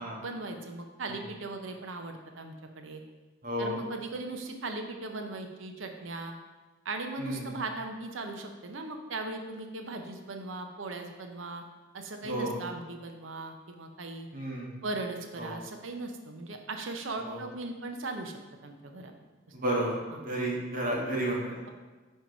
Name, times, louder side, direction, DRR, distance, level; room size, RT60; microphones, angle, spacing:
voice 1, 0.2-3.0 3.6-6.3 6.8-11.6 11.9-14.3 14.8-19.2 20.1-20.2, right 2 dB, 80° right, 5 dB, 0.7 m, -38 dB
voice 2, 3.4-3.8 7.2-7.5 12.2-12.6 14.3-14.7 15.4-15.6 17.2-17.4 19.5-21.6, right 1 dB, 45° right, -3 dB, 1.4 m, -32 dB
4.6 x 4.4 x 5.1 m, 1.3 s
head